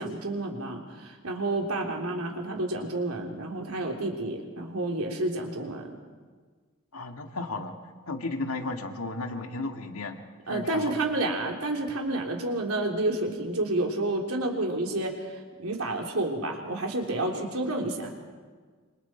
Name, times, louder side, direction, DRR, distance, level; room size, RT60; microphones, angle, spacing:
voice 1, 0.0-5.9 10.5-15.1 15.6-18.1, right 2 dB, 80° right, 1 dB, 3.5 m, -30 dB
voice 2, 6.9-7.8 8.1-10.9, left 2 dB, 80° left, 4 dB, 2.0 m, -34 dB
27.0 x 26.5 x 4.5 m, 1.5 s
head